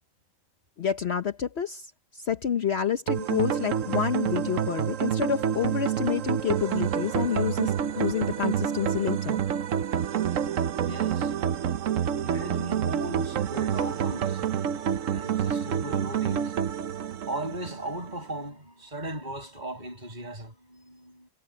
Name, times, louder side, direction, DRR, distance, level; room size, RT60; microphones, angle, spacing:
voice 1, 0.8-9.4, left 8 dB, 55° left, 1.0 m, -29 dB
sound 1, 3.1-18.1, right 9 dB, 65° right, 1.2 m, -28 dB
voice 2, 10.8-11.3 12.2-14.7 15.1-16.6 16.8-21.3, right 1 dB, 30° right, 6.5 m, -38 dB
omnidirectional pair, 1.5 m